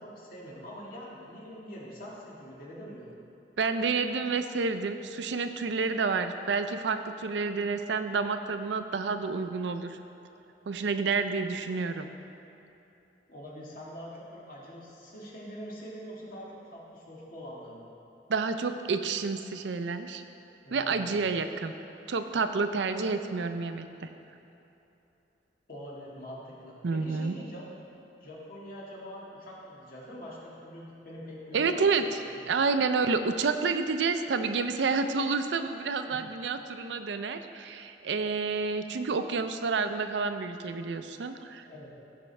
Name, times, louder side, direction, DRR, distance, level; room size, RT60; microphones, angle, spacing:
voice 1, 0.0-3.1 13.3-17.9 20.6-21.2 25.7-27.6 28.2-32.5 36.1-36.2 41.7-41.9, equal, 55° left, -5 dB, 1.8 m, -44 dB
voice 2, 3.6-10.0 10.7-12.1 18.3-20.2 20.7-21.7 22.1-24.1 26.8-27.3 31.5-32.0 32.5-41.7, right 4 dB, 85° right, 9 dB, 0.5 m, -29 dB
14.0 x 5.2 x 3.3 m, 3.0 s
head